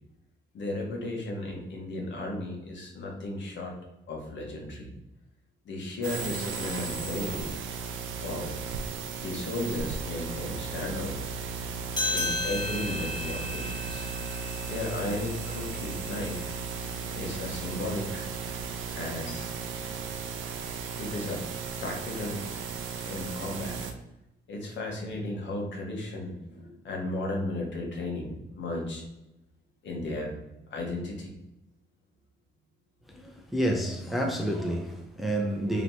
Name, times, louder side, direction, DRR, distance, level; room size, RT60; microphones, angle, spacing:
voice 1, 0.5-3.7 4.1-4.9 5.6-7.6 8.2-8.6 9.2-11.2 12.1-14.1 14.7-16.5 17.1-18.3 18.9-19.5 21.0-21.4 21.8-22.4 23.0-23.8 24.5-29.0 29.8-30.3 30.7-31.3, left 2 dB, 65° left, 1.3 m, -35 dB
sound 1, 6.0-23.9, right 5 dB, 80° right, 0.6 m, -35 dB
sound 2, 11.9-16.8, left 2 dB, 20° left, 1.3 m, -35 dB
voice 2, 33.1-35.8, right 1 dB, ahead, 0.6 m, -29 dB
3.2 x 3.0 x 4.0 m
cardioid pair, 90°, 20 cm